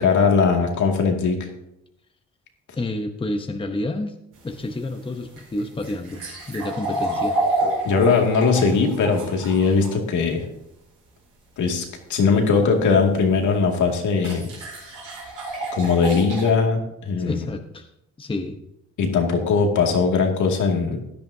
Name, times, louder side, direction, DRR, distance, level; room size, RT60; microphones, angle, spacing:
voice 1, 0.0-1.5 7.8-10.4 11.6-11.8 12.1-14.5 15.7-17.5 19.0-21.0, left 5 dB, 75° left, 2 dB, 2.3 m, -20 dB
voice 2, 2.8-4.1 4.4-7.4 17.2-17.9 18.2-18.6, left 2 dB, 15° left, 5 dB, 0.9 m, -29 dB
sound 1, 4.3-9.9 13.0-13.1 14.2-16.5, right 2 dB, 90° right, 4.6 m, -29 dB
16.0 x 10.5 x 2.7 m, 0.83 s
cardioid pair, 90°, 30 cm